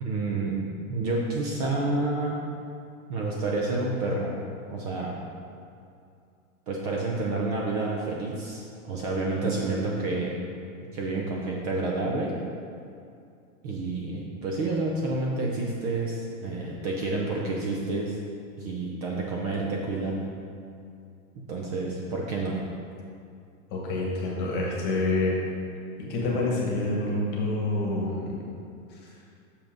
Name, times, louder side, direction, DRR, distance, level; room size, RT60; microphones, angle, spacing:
voice 1, 0.0-2.4 3.1-4.3 4.7-5.1 6.7-10.4 10.9-12.3 13.6-18.2 18.6-20.2 21.5-22.6, right 2 dB, 30° right, -2 dB, 0.6 m, -29 dB
voice 2, 23.7-25.3 26.0-28.4, left 2 dB, 25° left, -3 dB, 1.4 m, -27 dB
6.6 x 5.6 x 5.2 m, 2.5 s
supercardioid pair, 165°, 41 cm